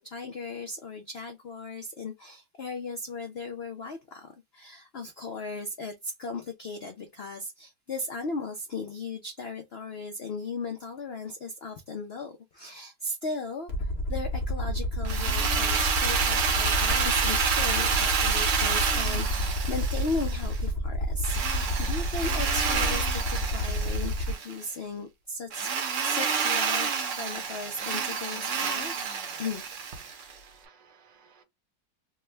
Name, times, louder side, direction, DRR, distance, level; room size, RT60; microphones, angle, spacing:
voice 1, 0.0-25.7 26.0-28.9 29.4-29.6, left 3 dB, 85° left, 0.5 m, -37 dB
Aircraft, 13.7-24.3, equal, 30° left, 0.9 m, -30 dB
Drill, 15.0-20.6 21.2-24.5 25.5-30.3, right 6 dB, 55° right, 0.9 m, -29 dB
voice 2, 30.0-31.4, right 6 dB, 80° right, 1.5 m, -58 dB
3.5 x 2.1 x 3.2 m
omnidirectional pair, 1.9 m